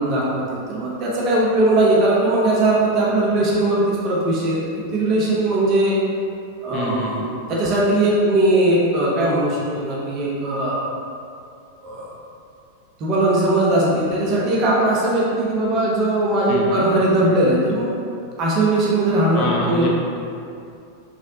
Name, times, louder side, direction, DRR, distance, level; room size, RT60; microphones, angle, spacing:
voice 1, 0.0-4.6 4.9-6.0 6.6-10.8 11.8-12.1 13.0-17.9 18.4-19.9, right 1 dB, 35° right, -5 dB, 0.5 m, -19 dB
voice 2, 6.7-7.2 16.5-16.9 19.3-19.9, left 2 dB, 40° left, -2 dB, 0.4 m, -26 dB
3.1 x 2.4 x 2.7 m, 2.5 s
figure-of-eight pair, 90°, 0 cm